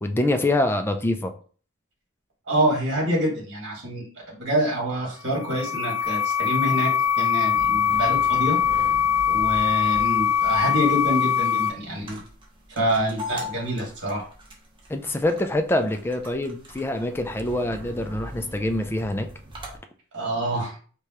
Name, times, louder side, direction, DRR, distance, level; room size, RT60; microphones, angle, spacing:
voice 1, 0.0-1.3 14.9-19.3, left 1 dB, 10° left, 7 dB, 0.3 m, -25 dB
voice 2, 2.5-8.8 9.3-12.2 12.8-14.2 20.1-20.8, right 1 dB, 55° right, -2 dB, 1.8 m, -26 dB
sound 1, 5.2-11.7, left 8 dB, 85° left, 0.5 m, -22 dB
sound 2, 6.0-19.8, left 1 dB, 25° right, 1.0 m, -41 dB
4.7 x 2.2 x 2.9 m, 0.42 s
head